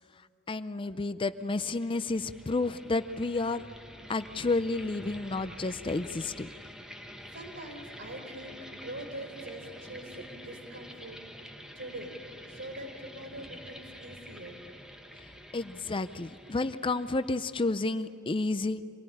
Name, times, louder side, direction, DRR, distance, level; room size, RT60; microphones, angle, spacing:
voice 1, 0.5-3.6 4.1-6.5 15.5-18.8, left 3 dB, 25° left, 12 dB, 0.5 m, -31 dB
sound 1, 1.4-18.1, equal, 5° right, 1.2 m, -48 dB
voice 2, 7.3-12.1 12.5-14.6, right 1 dB, 60° right, 3 dB, 4.4 m, -44 dB
26.0 x 19.0 x 10.0 m, 2.8 s
head